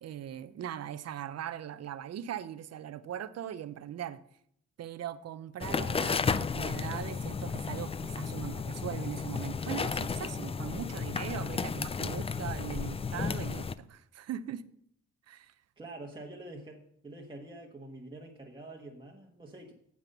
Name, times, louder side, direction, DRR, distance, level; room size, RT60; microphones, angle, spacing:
voice 1, 0.0-4.2 4.8-14.6 15.3-15.5, right 10 dB, 55° right, 0.7 m, -40 dB
sound 1, 5.6-13.8, left 5 dB, 20° left, 0.4 m, -33 dB
voice 2, 5.7-6.1 15.8-19.7, right 2 dB, 15° right, 1.4 m, -46 dB
9.2 x 7.4 x 5.4 m
cardioid pair, 90°, 30 cm